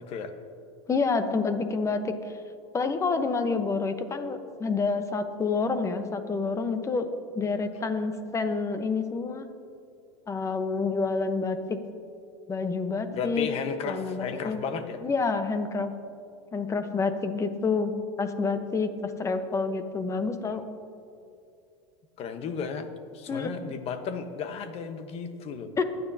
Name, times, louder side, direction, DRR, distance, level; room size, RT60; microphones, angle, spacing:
voice 1, 0.9-2.3 2.7-7.1 7.3-9.5 10.3-11.8 12.5-13.5 13.8-14.6 15.0-15.9 16.5-17.9 18.2-20.6 23.3-23.8 25.8-25.9, left 4 dB, 20° left, 8 dB, 1.0 m, -28 dB
voice 2, 13.1-15.0 22.2-22.9 23.1-25.7, left 6 dB, 40° left, 8 dB, 1.2 m, -34 dB
23.0 x 9.6 x 2.8 m, 2.5 s
supercardioid pair, 115°, 15 cm